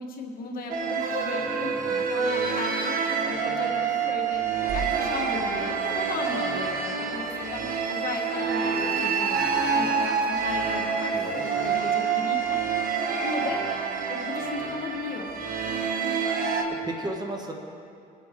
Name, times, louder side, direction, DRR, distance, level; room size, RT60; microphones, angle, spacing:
voice 1, 0.0-1.7 2.1-4.4 4.7-7.6 7.9-9.5 9.7-12.6 13.2-13.6 14.1-15.3, left 4 dB, 60° left, 1 dB, 1.7 m, -36 dB
sound 1, 0.7-16.6, right 6 dB, 60° right, 1.3 m, -27 dB
voice 2, 1.7-2.1 11.1-11.4 16.7-17.6, right 2 dB, 25° right, 1 dB, 1.5 m, -35 dB
sound 2, 4.7-8.5, right 4 dB, 75° right, 1.5 m, -41 dB
20.5 x 7.6 x 3.8 m, 2.5 s
cardioid pair, 110°, 17 cm